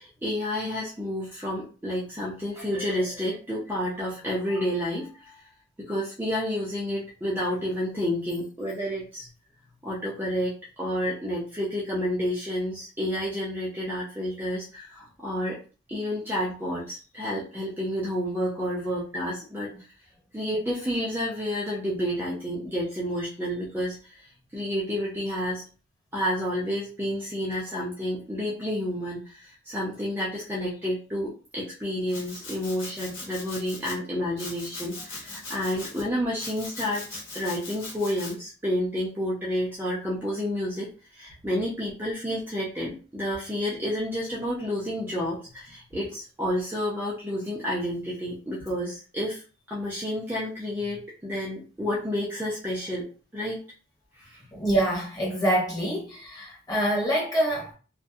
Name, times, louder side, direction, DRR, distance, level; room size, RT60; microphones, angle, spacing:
voice 1, 0.0-5.4 5.8-9.3 9.8-15.6 15.9-19.7 20.3-24.3 24.5-25.6 26.1-49.4 49.7-53.1 53.3-53.6 54.2-54.4, equal, 10° right, 0.5 m, -30 dB
Domestic sounds home sounds, 32.1-34.0 34.4-36.0 36.4-38.3, left 2 dB, 90° left, 1.1 m, -40 dB
voice 2, 54.5-57.7, right 1 dB, 20° left, 1.1 m, -25 dB
2.6 x 2.1 x 2.3 m
head